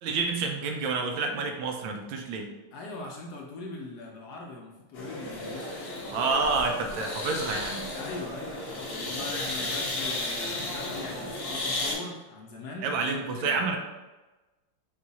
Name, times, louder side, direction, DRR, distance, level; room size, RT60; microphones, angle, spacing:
voice 1, 0.0-2.5 6.1-7.8 12.8-13.8, right 4 dB, 75° right, 3 dB, 1.3 m, -29 dB
voice 2, 2.7-5.7 7.9-13.8, left 3 dB, 70° left, -1 dB, 1.0 m, -41 dB
sound 1, 4.9-11.9, left 2 dB, 40° left, 1.0 m, -34 dB
4.4 x 2.4 x 4.0 m, 1.1 s
omnidirectional pair, 2.2 m